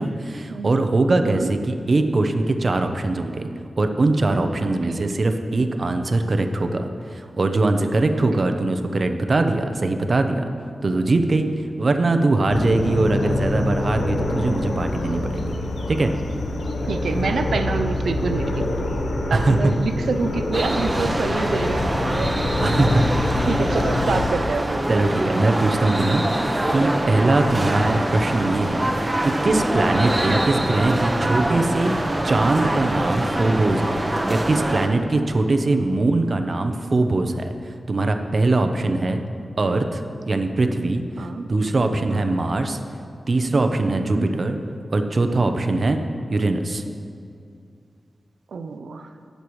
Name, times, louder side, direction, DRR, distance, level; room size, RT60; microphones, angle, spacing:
voice 1, 0.0-3.5 3.8-10.4 10.8-15.6 15.9-16.1 19.3-19.6 22.6-23.0 24.9-31.9 32.2-34.0 34.3-39.2 39.6-41.0 41.5-42.8 43.3-44.6 44.9-46.0 46.3-46.8, right 2 dB, 55° right, 6 dB, 0.8 m, -21 dB
voice 2, 4.7-5.2 10.8-11.1 12.9-13.1 16.9-18.7 19.3-23.0 23.5-24.8 35.7-35.9 38.6-39.2 41.2-41.5 42.1-42.4 44.0-44.3 48.5-49.1, right 4 dB, 85° right, 9 dB, 0.5 m, -28 dB
sound 1, 12.5-24.3, left 2 dB, 75° left, 0.9 m, -26 dB
sound 2, 20.5-34.9, right 1 dB, 25° right, 1.0 m, -24 dB
18.0 x 6.7 x 3.2 m, 2.4 s
cardioid pair, 55°, 0 cm